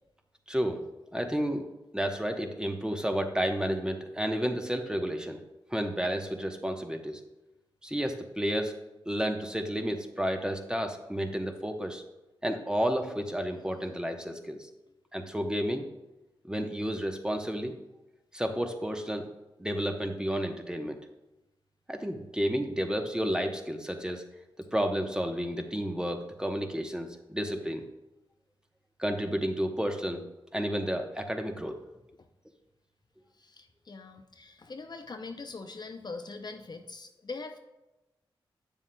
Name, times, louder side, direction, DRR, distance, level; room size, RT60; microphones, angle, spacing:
voice 1, 0.5-0.8 1.1-1.7 1.9-5.4 5.7-7.2 7.8-8.8 9.1-12.0 12.4-14.6 15.1-15.9 16.4-17.7 18.3-19.3 19.6-21.0 21.9-24.2 24.7-27.8 29.0-30.2 30.5-31.8, equal, 10° right, 4 dB, 0.9 m, -31 dB
voice 2, 33.4-37.6, left 3 dB, 45° left, 6 dB, 0.6 m, -42 dB
8.3 x 7.1 x 2.3 m, 0.98 s
cardioid pair, 40°, 10 cm